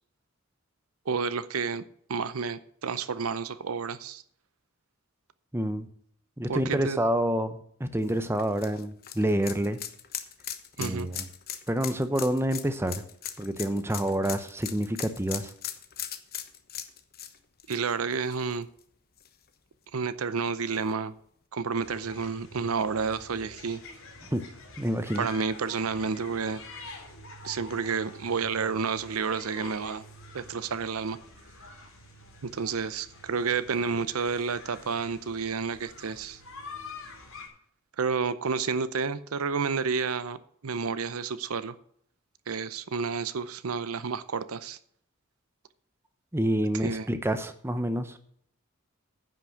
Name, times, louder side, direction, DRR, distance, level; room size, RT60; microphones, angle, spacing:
voice 1, 1.1-1.8 2.1-4.2 6.5-7.0 10.8-11.1 17.7-18.7 19.9-21.1 21.5-23.8 25.2-26.6 27.4-30.0 30.3-31.2 32.4-36.4 38.0-41.8 42.5-44.8 46.8-47.1, right 5 dB, 85° right, 0.7 m, -30 dB
voice 2, 5.5-5.9 6.4-9.8 10.8-11.2 11.7-13.0 13.4-15.5 24.3-24.4 24.8-25.3 46.3-48.2, right 1 dB, 10° right, 0.8 m, -28 dB
sound 1, 8.0-18.8 19.2-19.3 20.7-20.8, left 10 dB, 45° left, 1.0 m, -39 dB
sound 2, 21.8-37.5, left 2 dB, 65° left, 3.4 m, -47 dB
10.0 x 6.0 x 7.8 m
head